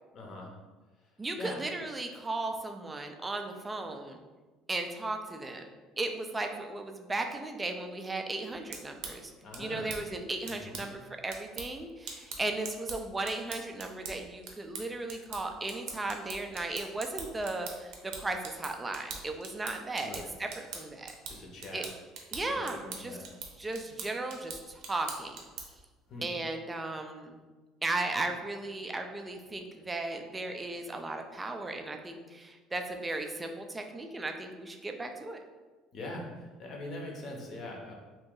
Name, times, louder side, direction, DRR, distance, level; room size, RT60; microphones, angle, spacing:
voice 1, 0.1-0.5 1.0-1.6 9.4-10.0 10.5-10.9 20.0-20.3 21.3-21.8 22.4-23.2 26.1-26.3 35.9-37.9, left 2 dB, 40° left, 0 dB, 0.7 m, -43 dB
voice 2, 1.2-4.2 4.7-5.7 6.0-9.3 9.6-20.1 20.4-21.1 21.7-21.9 22.3-23.2 23.6-25.4 26.2-27.4 27.8-35.4, right 2 dB, 10° right, 4 dB, 0.3 m, -36 dB
sound 1, 8.5-25.9, right 5 dB, 70° right, 0.6 m, -44 dB
3.0 x 2.6 x 3.7 m, 1.3 s
cardioid pair, 160°, 0 cm